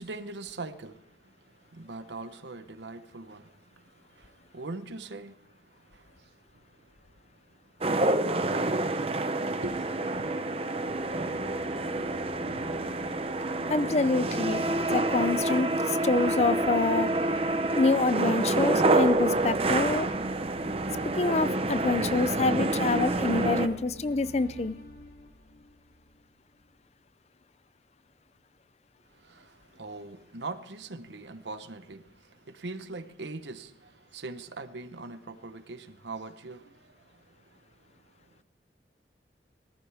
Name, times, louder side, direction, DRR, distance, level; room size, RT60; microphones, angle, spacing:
voice 1, 0.0-9.1 9.6-10.3 29.1-38.4, right 3 dB, 80° right, 1.0 m, -43 dB
sound 1, 7.8-23.7, right 2 dB, 30° right, 0.8 m, -28 dB
sound 2, 10.3-26.3, left 1 dB, 55° left, 1.5 m, -47 dB
voice 2, 13.7-17.1 17.8-20.1 21.2-24.8, left 3 dB, 35° left, 0.5 m, -26 dB
18.5 x 14.5 x 3.5 m
head